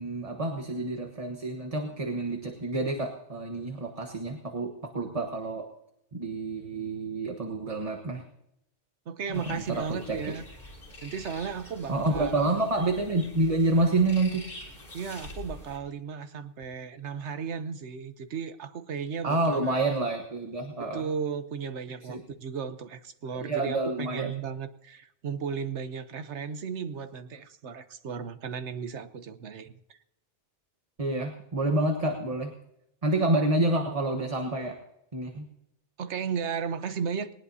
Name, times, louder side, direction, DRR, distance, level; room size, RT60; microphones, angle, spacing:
voice 1, 0.0-5.7 6.1-8.2 9.3-10.2 11.9-14.4 19.2-21.1 22.1-22.2 23.3-24.3 31.0-32.5 33.0-34.8 35.1-35.5, right 2 dB, 30° right, 3 dB, 1.3 m, -28 dB
voice 2, 9.1-10.4 11.0-12.5 14.9-19.7 20.9-30.0 36.0-37.3, right 6 dB, 75° right, 10 dB, 1.2 m, -35 dB
sound 1, 9.3-15.8, left 1 dB, 50° left, 3.7 m, -45 dB
20.0 x 19.0 x 2.8 m, 0.82 s
omnidirectional pair, 1.2 m